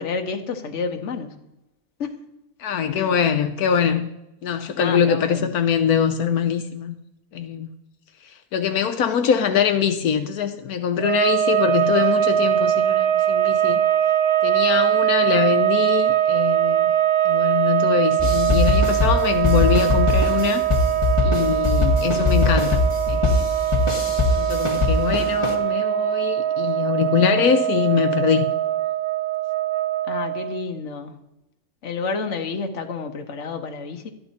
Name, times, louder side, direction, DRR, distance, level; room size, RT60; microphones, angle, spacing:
voice 1, 0.0-1.4 2.0-2.1 2.9-3.1 4.7-5.5 30.1-31.2 31.8-34.1, left 4 dB, 55° left, 1.4 m, -30 dB
voice 2, 2.6-4.1 4.4-6.9 7.3-7.7 8.5-13.8 14.4-16.9 17.2-20.6 21.2-22.8 23.1-23.5 24.3-28.5, left 7 dB, 80° left, 1.3 m, -23 dB
sound 1, 11.0-30.6, right 11 dB, 90° right, 1.5 m, -22 dB
sound 2, 18.2-25.5, left 3 dB, 20° left, 1.7 m, -21 dB
13.0 x 10.5 x 4.2 m
omnidirectional pair, 1.6 m